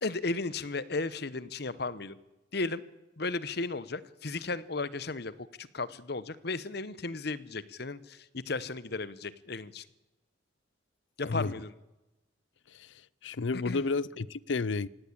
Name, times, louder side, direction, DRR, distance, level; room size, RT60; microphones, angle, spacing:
voice 1, 0.0-2.1 2.5-2.8 3.2-9.8 11.2-11.7 13.5-13.8, left 3 dB, 55° left, 18 dB, 1.0 m, -35 dB
voice 2, 12.7-14.9, left 4 dB, 70° left, 23 dB, 0.6 m, -32 dB
18.0 x 17.0 x 8.7 m, 1.0 s
head